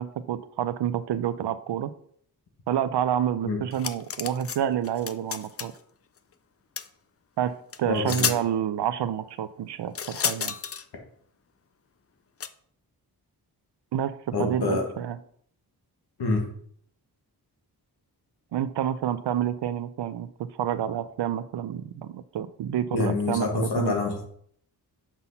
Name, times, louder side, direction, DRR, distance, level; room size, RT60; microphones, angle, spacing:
voice 1, 0.0-1.9 2.7-5.7 7.4-10.5 13.9-14.1 14.4-15.2 18.5-23.9, right 10 dB, 90° right, 13 dB, 0.6 m, -28 dB
sound 1, 3.7-4.6 4.8-5.8 6.8-6.9 7.7-7.8 8.1-8.4 9.9-10.8 12.4-12.5, left 7 dB, 35° left, 0.4 m, -30 dB
voice 2, 7.8-8.3 14.3-14.8 16.2-16.4 22.9-24.3, left 3 dB, 70° left, 2 dB, 1.9 m, -26 dB
6.1 x 5.6 x 5.6 m, 0.63 s
wide cardioid pair, 160°, 40 cm